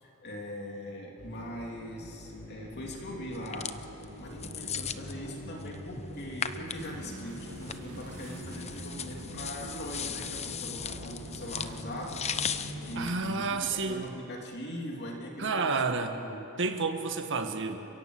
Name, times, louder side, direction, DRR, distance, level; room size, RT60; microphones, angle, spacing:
voice 1, 0.0-12.4 12.9-16.6, equal, 50° left, 0 dB, 2.8 m, -41 dB
sound 1, 1.2-13.0, equal, 70° left, 7.0 m, -45 dB
sound 2, 3.3-14.1, left 7 dB, 30° left, 0.8 m, -39 dB
sound 3, 6.8-13.1, right 1 dB, 75° right, 2.8 m, -47 dB
voice 2, 13.0-14.2 15.4-16.1 16.6-17.9, right 4 dB, 60° right, 5 dB, 1.9 m, -30 dB
30.0 x 16.5 x 7.9 m, 3.0 s
head